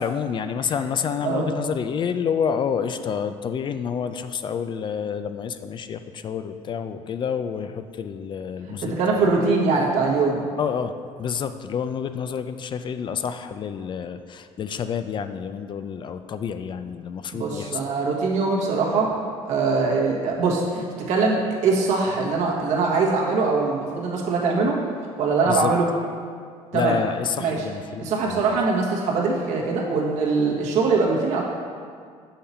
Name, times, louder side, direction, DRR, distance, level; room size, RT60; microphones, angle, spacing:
voice 1, 0.0-9.9 10.6-10.9 11.2-17.8 25.5-25.7 26.7-28.6, left 7 dB, 40° left, 10 dB, 0.4 m, -29 dB
voice 2, 1.2-1.5 8.8-10.4 17.3-19.1 19.4-24.8 25.2-25.9 26.7-27.0 27.4-27.6 28.0-31.4, right 4 dB, 75° right, -2 dB, 1.4 m, -22 dB
6.8 x 5.7 x 4.2 m, 2.1 s
cardioid pair, 110°, 12 cm